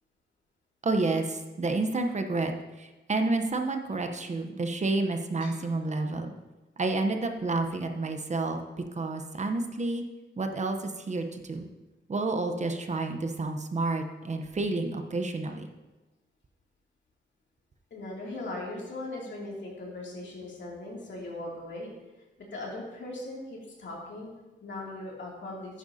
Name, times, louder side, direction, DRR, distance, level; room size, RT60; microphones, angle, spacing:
voice 1, 0.8-2.5 2.8-6.3 6.8-8.6 9.0-10.0 10.4-11.7 12.1-15.7, right 3 dB, 40° right, 5 dB, 0.8 m, -30 dB
voice 2, 17.9-21.9 22.4-25.8, left 2 dB, 75° left, -3 dB, 2.7 m, -39 dB
10.5 x 10.0 x 2.8 m, 1.1 s
wide cardioid pair, 105°, 19 cm